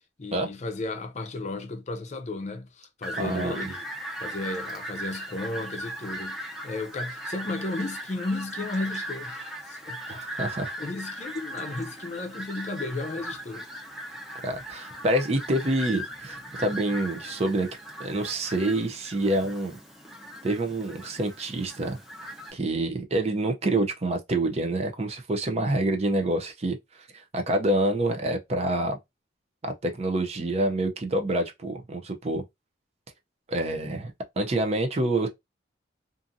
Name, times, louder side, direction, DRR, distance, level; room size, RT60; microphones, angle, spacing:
voice 1, 0.2-3.8 4.2-10.4 10.8-13.7, left 2 dB, 40° left, 0.5 m, -34 dB
Fowl, 3.0-22.5, right 1 dB, ahead, 0.8 m, -38 dB
voice 2, 3.1-3.7 10.1-10.8 14.4-17.7 18.0-19.8 20.4-22.0 22.5-29.0 29.6-32.4 33.5-35.3, right 1 dB, 35° right, 0.5 m, -27 dB
2.6 x 2.5 x 2.5 m
head